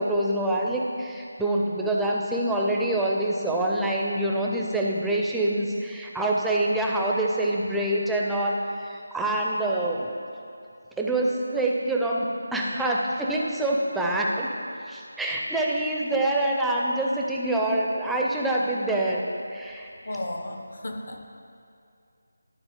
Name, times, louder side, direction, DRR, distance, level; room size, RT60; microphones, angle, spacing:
voice 1, 0.0-10.1 11.0-14.6 14.9-19.2 19.5-19.9, right 1 dB, ahead, -3 dB, 0.5 m, -26 dB
voice 2, 20.0-21.3, left 1 dB, 60° left, 4 dB, 0.9 m, -34 dB
11.5 x 4.2 x 5.0 m, 2.4 s
figure-of-eight pair, 165°, 0 cm